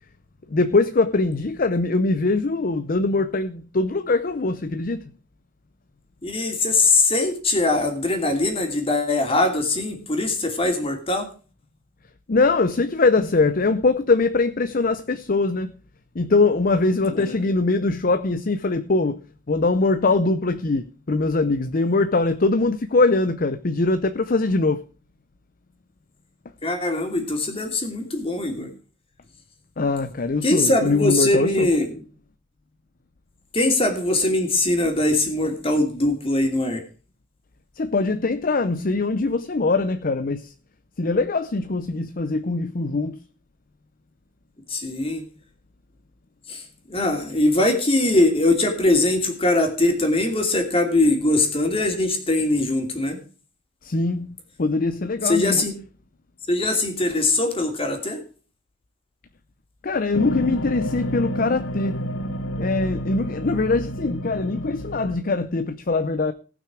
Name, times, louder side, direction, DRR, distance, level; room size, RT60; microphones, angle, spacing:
voice 1, 0.5-5.0 12.3-15.7 16.2-19.2 19.5-24.8 29.8-31.7 37.8-40.5 41.0-43.2 53.8-54.3 54.6-55.6 59.8-62.0 62.6-66.3, left 3 dB, 45° left, 0.6 m, -22 dB
voice 2, 6.2-11.3 17.1-17.4 26.6-28.7 30.4-32.0 33.5-36.8 44.7-45.2 46.5-53.2 55.2-55.7 56.5-58.2, left 2 dB, 30° left, 2.7 m, -21 dB
sound 1, 60.1-65.2, equal, 80° left, 1.1 m, -30 dB
18.5 x 6.2 x 4.9 m
head